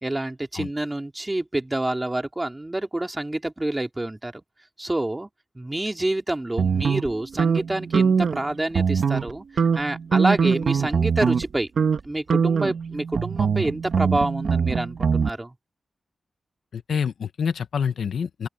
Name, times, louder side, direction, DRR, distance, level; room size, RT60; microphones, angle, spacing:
voice 1, 0.0-4.3 4.8-5.3 5.5-9.4 9.7-11.7 12.0-15.5, right 1 dB, 15° right, 2.7 m, -27 dB
sound 1, 6.6-8.4 8.7-9.3 9.6-11.5 11.8-12.0 12.3-15.3, right 6 dB, 60° right, 1.3 m, -22 dB
voice 2, 16.7-18.5, left 7 dB, 80° left, 1.0 m, -27 dB
open air
wide cardioid pair, 170°, 0 cm